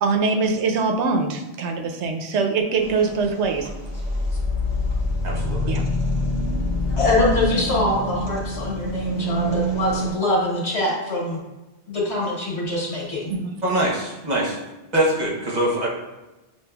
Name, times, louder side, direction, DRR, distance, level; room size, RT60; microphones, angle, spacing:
voice 1, 0.0-3.7 5.7-5.9 13.3-13.6, right 4 dB, 85° right, 4 dB, 0.9 m, -23 dB
sound 1, 2.8-10.1, left 1 dB, 25° left, 0.8 m, -25 dB
voice 2, 5.2-5.7 13.6-14.6 14.9-15.9, right 1 dB, 40° right, -2 dB, 0.9 m, -23 dB
voice 3, 7.0-11.4 11.9-13.3, left 1 dB, 75° left, -5 dB, 1.7 m, -23 dB
7.1 x 2.9 x 2.2 m, 1.1 s
omnidirectional pair, 1.1 m